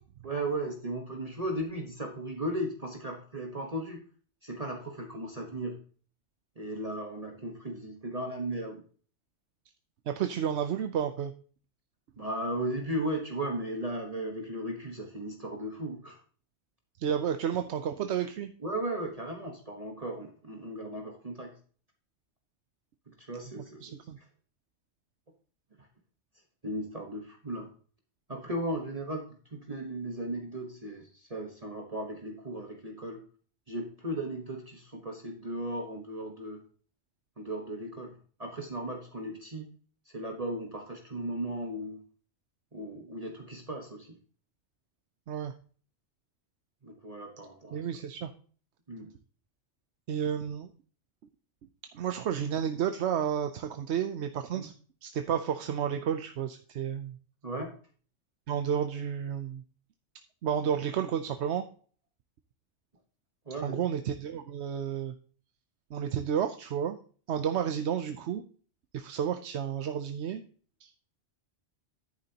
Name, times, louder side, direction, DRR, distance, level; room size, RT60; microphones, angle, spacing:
voice 1, 0.2-4.0 4.4-5.8 6.6-8.8 12.2-16.2 18.6-21.5 23.1-23.9 26.6-27.7 28.3-33.2 33.7-36.6 37.4-39.7 40.1-42.0 42.7-44.2 46.8-48.0 48.9-49.1 54.5-54.7 57.4-57.7 63.5-63.9, right 1 dB, 30° right, 1 dB, 1.3 m, -36 dB
voice 2, 10.1-11.3 17.0-18.5 23.8-24.2 45.3-45.5 47.7-48.3 50.1-50.7 51.9-54.7 55.0-57.2 58.5-59.6 60.4-61.6 63.6-65.1 65.9-67.0 67.3-68.4 68.9-70.4 70.8-70.9, right 8 dB, 70° right, 8 dB, 0.9 m, -31 dB
10.5 x 9.2 x 2.9 m, 0.43 s
omnidirectional pair, 1.2 m